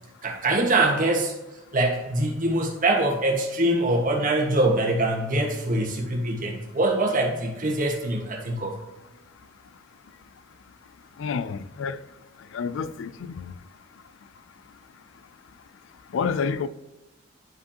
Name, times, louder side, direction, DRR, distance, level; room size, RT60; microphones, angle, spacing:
voice 1, 0.2-1.4 1.7-8.8, right 2 dB, 45° right, 1.4 m, -23 dB
voice 2, 11.2-12.0 12.5-13.5 16.1-16.7, left 5 dB, 70° left, 0.4 m, -29 dB
10.5 x 5.1 x 2.8 m
head